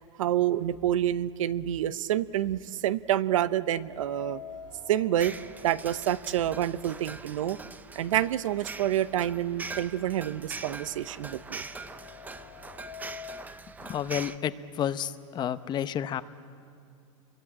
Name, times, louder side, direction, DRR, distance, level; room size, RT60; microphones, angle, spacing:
voice 1, 0.2-4.4 4.9-5.3 5.6-7.6 7.9-11.6, right 12 dB, 85° right, 15 dB, 0.8 m, -28 dB
sound 1, 3.8-7.8 8.2-8.3 9.2-9.3 9.7-13.6, left 8 dB, 70° left, 1.8 m, -48 dB
sound 2, 5.2-14.4, right 3 dB, 10° right, 0.7 m, -42 dB
voice 2, 13.8-16.2, left 10 dB, 25° left, 13 dB, 0.8 m, -31 dB
28.5 x 23.0 x 8.7 m, 2.3 s
supercardioid pair, 135°, 16 cm